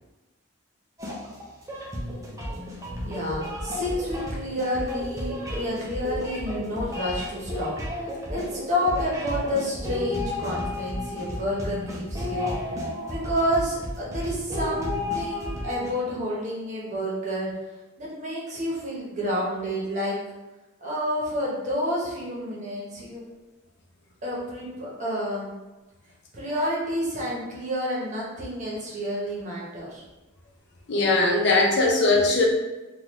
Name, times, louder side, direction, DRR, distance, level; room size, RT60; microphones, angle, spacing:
sound 1, 1.0-15.9, left 1 dB, 15° right, 0.6 m, -32 dB
voice 1, 3.0-12.6 13.1-17.5 18.0-20.2 20.8-23.2 24.2-25.5 26.3-30.0, equal, 40° right, -5 dB, 0.9 m, -29 dB
voice 2, 30.9-32.4, left 2 dB, 60° left, -2 dB, 0.6 m, -20 dB
3.7 x 2.4 x 3.0 m, 1.1 s
head